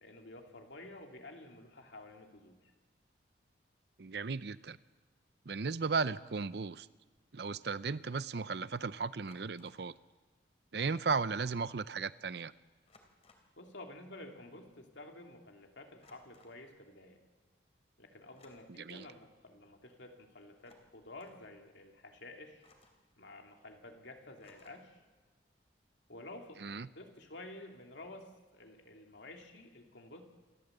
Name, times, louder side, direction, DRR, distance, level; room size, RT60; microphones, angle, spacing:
voice 1, 0.0-2.7 13.6-17.2 18.0-22.7 23.2-25.0 26.1-30.2, left 2 dB, 75° left, 3 dB, 2.6 m, -51 dB
voice 2, 4.0-4.8 5.5-6.9 7.3-9.9 10.7-12.5 18.9-19.0 26.6-26.9, right 4 dB, 60° right, 16 dB, 0.6 m, -35 dB
sound 1, 7.1-7.3 9.2-9.9 11.3-11.4 11.6-11.9 12.9-13.6 16.0-16.6 18.3-19.2 20.5-21.5 22.6-23.1 24.4-25.0, left 2 dB, 35° left, 3.0 m, -65 dB
28.0 x 13.5 x 7.9 m, 1.3 s
head